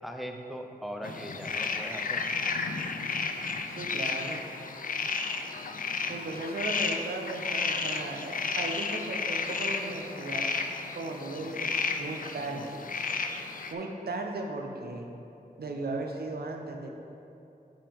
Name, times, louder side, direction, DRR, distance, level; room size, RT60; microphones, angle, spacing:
voice 1, 0.0-2.2, equal, ahead, 3 dB, 0.5 m, -39 dB
sound 1, 1.0-13.7, left 4 dB, 55° left, 0.4 m, -32 dB
voice 2, 3.7-4.4 6.1-10.5 10.9-12.8 13.7-15.1 15.6-16.9, right 2 dB, 75° right, 2 dB, 0.6 m, -36 dB
5.7 x 5.1 x 3.5 m, 2.8 s
wide cardioid pair, 65°, 16 cm